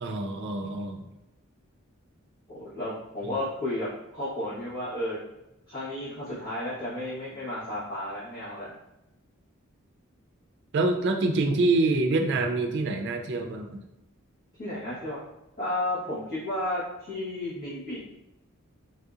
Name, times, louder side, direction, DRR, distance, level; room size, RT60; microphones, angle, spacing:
voice 1, 0.0-1.1 10.7-13.8, right 2 dB, 55° right, 4 dB, 0.4 m, -26 dB
voice 2, 2.5-5.2 5.7-8.8 14.6-15.2 15.6-18.1, left 1 dB, 45° left, -13 dB, 1.1 m, -33 dB
3.3 x 2.7 x 2.4 m, 0.91 s
head